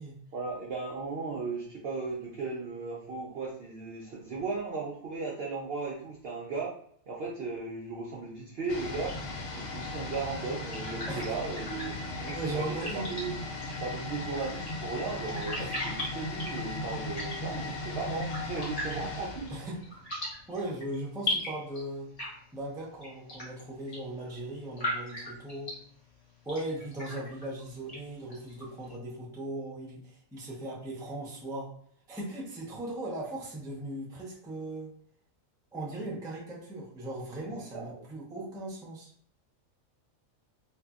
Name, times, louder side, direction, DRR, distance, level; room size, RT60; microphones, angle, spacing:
voice 1, 0.3-6.8 7.1-9.2 9.5-13.4 13.8-19.5 27.2-27.3 37.4-38.1, right 4 dB, 65° right, -3 dB, 0.6 m, -36 dB
sound 1, 8.7-20.4 20.7-20.8, left 2 dB, 75° left, 0.9 m, -37 dB
sound 2, 9.0-29.0, left 1 dB, 30° left, 0.8 m, -41 dB
voice 2, 12.3-13.1 15.6-15.7 19.5-19.8 20.5-22.1 22.5-25.7 26.4-31.7 32.1-34.9 35.7-39.1, right 1 dB, 5° right, -4 dB, 0.3 m, -38 dB
2.7 x 2.5 x 2.3 m, 0.62 s
omnidirectional pair, 1.5 m